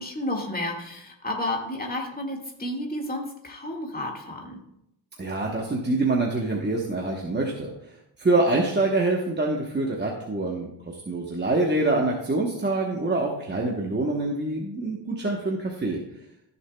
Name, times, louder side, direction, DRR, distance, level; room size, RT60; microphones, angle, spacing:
voice 1, 0.0-4.6, left 1 dB, 20° left, 0 dB, 2.0 m, -31 dB
voice 2, 5.2-16.0, right 2 dB, 25° right, -1 dB, 1.1 m, -25 dB
14.5 x 6.8 x 2.3 m, 0.81 s
cardioid pair, 105°, 45 cm